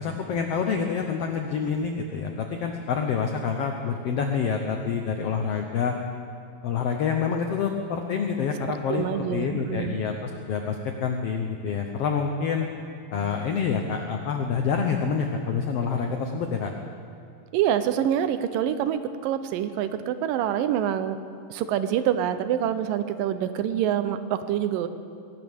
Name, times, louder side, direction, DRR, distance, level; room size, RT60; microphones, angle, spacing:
voice 1, 0.0-6.0 6.6-9.1 9.3-12.7 13.1-16.7, left 6 dB, 80° left, 3 dB, 1.3 m, -27 dB
voice 2, 8.9-10.0 17.5-21.2 21.5-24.9, right 10 dB, 85° right, 11 dB, 2.4 m, -26 dB
21.0 x 17.5 x 3.6 m, 2.5 s
omnidirectional pair, 3.9 m